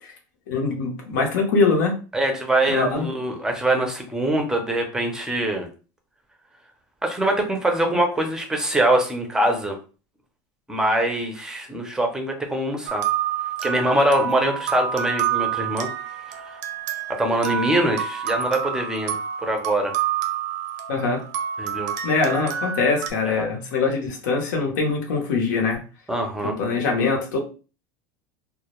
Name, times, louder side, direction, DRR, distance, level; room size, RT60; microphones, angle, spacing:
voice 1, 0.5-2.0 2.7-3.1 20.9-21.2 22.0-25.8 26.4-27.4, left 4 dB, 90° left, 1 dB, 0.7 m, -23 dB
voice 2, 2.1-5.7 7.0-9.8 10.7-13.0 13.6-15.9 16.5-16.6 17.1-19.9 21.6-21.9 23.3-23.5 26.1-26.6, right 1 dB, 5° right, 3 dB, 0.5 m, -23 dB
sound 1, 12.9-23.1, right 8 dB, 85° right, 0.5 m, -28 dB
2.2 x 2.0 x 2.9 m, 0.35 s
supercardioid pair, 145°, 10 cm